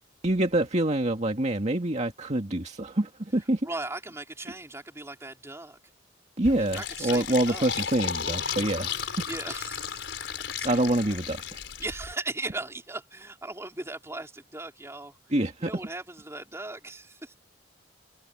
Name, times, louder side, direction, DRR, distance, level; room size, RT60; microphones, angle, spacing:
voice 1, 0.2-3.6 6.4-9.0 10.6-11.6 15.3-15.7, right 1 dB, 40° right, 2.1 m, -26 dB
voice 2, 3.4-5.8 6.6-7.9 9.0-10.3 10.6-11.2 11.8-15.2 15.6-17.3, right 2 dB, 15° right, 3.6 m, -38 dB
Fill (with liquid), 6.4-12.1, left 7 dB, 80° left, 4.0 m, -34 dB
head